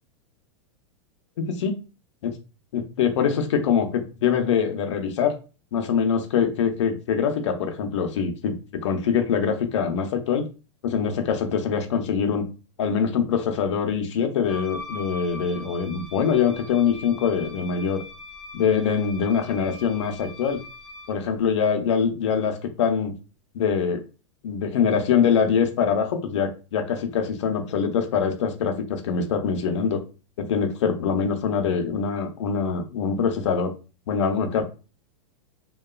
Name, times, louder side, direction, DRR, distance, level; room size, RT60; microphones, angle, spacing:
voice 1, 1.4-1.8 2.2-2.3 2.7-5.4 5.7-10.4 10.8-12.5 12.8-18.0 18.5-20.6 21.1-23.2 23.5-24.0 24.4-30.0 30.4-33.7 34.1-34.6, left 6 dB, 70° left, 6 dB, 0.6 m, -24 dB
Wind instrument woodwind instrument, 14.4-21.2, left 2 dB, 40° right, 1.0 m, -41 dB
2.9 x 2.3 x 2.3 m, 0.32 s
supercardioid pair, 180°, 16 cm